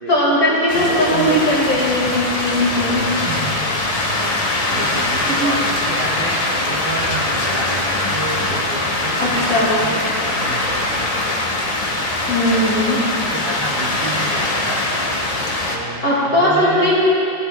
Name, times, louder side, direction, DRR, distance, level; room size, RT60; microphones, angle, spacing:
voice 1, 0.1-3.1 5.2-5.5 9.2-9.7 12.3-13.0 16.0-17.0, left 1 dB, 50° left, -6 dB, 2.4 m, -18 dB
sound 1, 0.7-15.8, left 2 dB, 85° left, 0.3 m, -22 dB
voice 2, 0.7-1.4 3.1-3.9 4.2-11.6 12.4-14.8 15.7-16.9, right 1 dB, 50° right, -3 dB, 0.6 m, -29 dB
14.5 x 11.0 x 2.2 m, 2.6 s
omnidirectional pair, 2.0 m